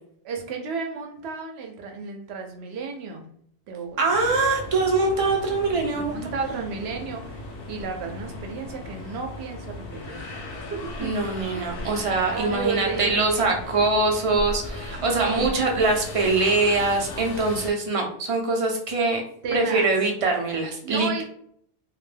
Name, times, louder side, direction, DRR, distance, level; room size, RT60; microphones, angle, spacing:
voice 1, 0.2-3.3 3.7-4.3 5.9-10.2 10.4-11.7 12.3-13.6 15.0-15.6 19.4-19.9 20.8-21.2, right 5 dB, 80° right, 3 dB, 0.8 m, -33 dB
voice 2, 4.0-6.1 11.0-19.2 19.5-21.2, right 3 dB, 45° right, 1 dB, 0.5 m, -23 dB
sound 1, 4.1-17.7, left 2 dB, 65° left, 0.8 m, -37 dB
2.2 x 2.1 x 3.2 m, 0.65 s
omnidirectional pair, 1.1 m